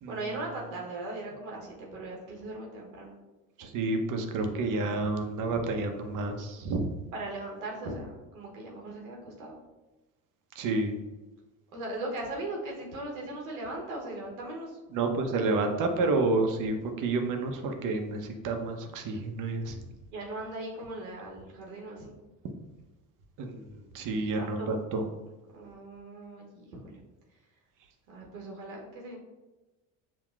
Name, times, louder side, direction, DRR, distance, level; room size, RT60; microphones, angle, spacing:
voice 1, 0.1-3.2 7.1-9.5 11.7-14.8 19.8-22.2 24.4-24.7 25.5-27.0 28.1-29.2, right 2 dB, 85° right, -2 dB, 1.0 m, -39 dB
voice 2, 3.6-6.8 10.6-11.0 14.9-19.8 23.4-25.0, right 3 dB, 50° right, 5 dB, 0.7 m, -30 dB
5.5 x 2.2 x 2.3 m, 1.1 s
hypercardioid pair, 75°, 40 cm